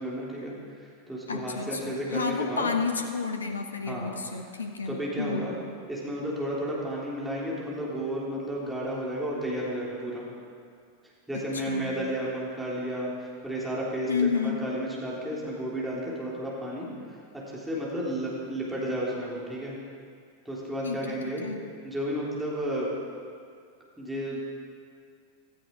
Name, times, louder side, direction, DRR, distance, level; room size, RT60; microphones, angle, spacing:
voice 1, 0.0-2.7 3.9-4.1 4.9-5.6 5.9-10.3 11.3-19.8 20.5-21.4 21.8-22.9 24.0-24.4, right 1 dB, 5° right, -6 dB, 3.5 m, -32 dB
voice 2, 1.3-5.5 11.7-11.9 14.1-14.6 20.8-21.2 21.4-21.6, left 5 dB, 75° left, 5 dB, 1.2 m, -30 dB
16.5 x 13.5 x 4.7 m, 2.2 s
figure-of-eight pair, 90°, 0 cm